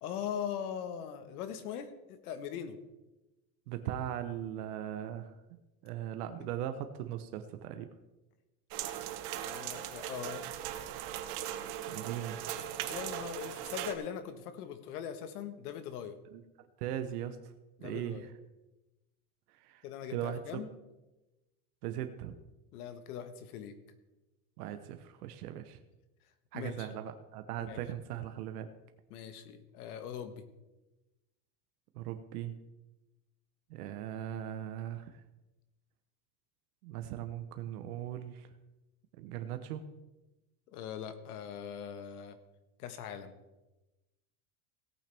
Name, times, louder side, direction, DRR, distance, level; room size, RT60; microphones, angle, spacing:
voice 1, 0.0-2.8 9.4-10.5 12.9-16.2 17.8-18.2 19.8-20.7 22.7-23.8 26.5-26.9 27.7-27.8 29.1-30.4 40.7-42.4 42.8-43.3, left 8 dB, 75° left, 10 dB, 1.5 m, -41 dB
voice 2, 3.7-5.3 5.8-7.9 11.9-12.4 16.3-17.5 17.8-18.3 19.5-20.4 21.8-22.3 24.6-25.8 26.5-28.7 31.9-32.5 33.7-35.2 36.8-38.5 39.2-39.8, right 11 dB, 80° right, 8 dB, 1.0 m, -39 dB
sound 1, 8.7-13.9, right 11 dB, 40° right, 0.8 m, -39 dB
17.5 x 8.8 x 3.5 m, 1.0 s
supercardioid pair, 175°, 45 cm